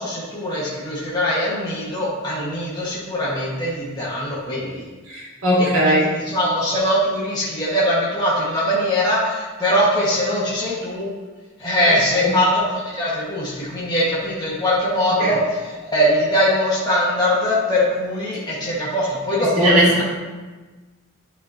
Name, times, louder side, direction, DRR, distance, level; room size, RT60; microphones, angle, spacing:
voice 1, 0.0-4.9 5.6-11.1 11.6-20.0, equal, 20° left, -8 dB, 1.7 m, -22 dB
voice 2, 5.1-6.1 12.2-12.3 15.2-15.3 19.6-20.0, equal, 85° right, -5 dB, 2.6 m, -18 dB
10.5 x 5.7 x 2.9 m, 1.3 s
head